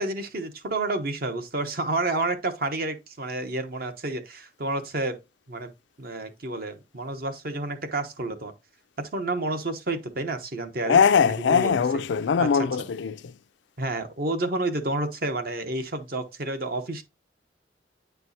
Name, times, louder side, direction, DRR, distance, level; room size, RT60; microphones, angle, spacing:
voice 1, 0.0-5.2 5.5-5.7 6.0-8.5 9.0-11.1 11.5-11.7 12.4-12.5 13.8-17.0, right 2 dB, 55° right, 1.0 m, -30 dB
voice 2, 10.9-13.3, left 6 dB, 80° left, 0.4 m, -21 dB
9.0 x 4.5 x 2.7 m
head